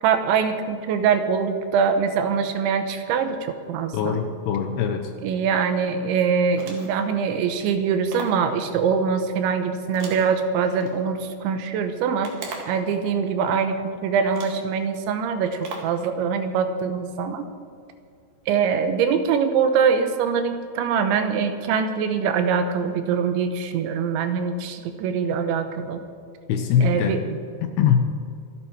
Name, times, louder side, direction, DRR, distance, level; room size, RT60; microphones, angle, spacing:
voice 1, 0.0-4.2 5.2-12.3 12.7-13.8 14.0-17.4 18.5-26.0 26.8-27.4, right 6 dB, 80° right, 8 dB, 3.2 m, -23 dB
voice 2, 3.9-5.1 26.5-27.2 27.6-28.1, left 8 dB, 75° left, 6 dB, 2.6 m, -22 dB
sound 1, 6.5-7.1 8.1-8.5 9.9-10.9 12.2-12.9 13.7-13.8 14.3-14.7 15.6-16.0, right 4 dB, 55° right, 2.9 m, -38 dB
26.0 x 8.8 x 4.6 m, 2.3 s
omnidirectional pair, 5.4 m